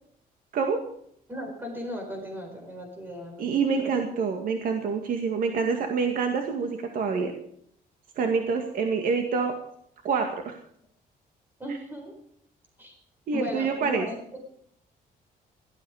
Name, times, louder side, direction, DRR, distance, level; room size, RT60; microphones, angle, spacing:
voice 1, 0.5-0.9 3.4-7.3 8.2-9.6 10.0-10.6 13.3-14.1, right 5 dB, 60° right, 4 dB, 2.1 m, -26 dB
voice 2, 1.3-3.5 3.8-3.9 11.6-12.1 12.8-13.0 13.3-14.4, equal, 15° right, 3 dB, 4.4 m, -37 dB
17.5 x 13.0 x 5.0 m, 0.68 s
cardioid pair, 175°, 16 cm